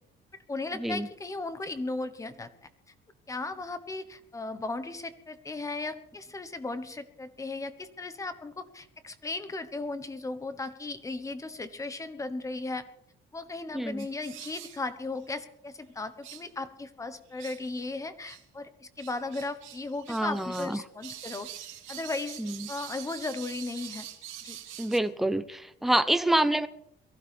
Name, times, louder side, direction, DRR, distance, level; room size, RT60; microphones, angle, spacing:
voice 1, 0.5-2.7 3.3-12.8 13.3-21.5 21.9-22.4 22.7-24.1 24.4-24.6, left 3 dB, 15° left, 11 dB, 1.2 m, -36 dB
voice 2, 13.7-14.1 20.1-20.8 22.4-22.7 24.8-26.7, right 1 dB, ahead, 10 dB, 0.7 m, -27 dB
sound 1, 14.0-14.8 15.2-15.3 16.2-16.5 17.3-17.9 18.2-18.4 19.0-20.7 21.0-25.0, right 11 dB, 80° right, 2.8 m, -45 dB
23.0 x 15.5 x 3.5 m, 0.76 s
cardioid pair, 155°, 20 cm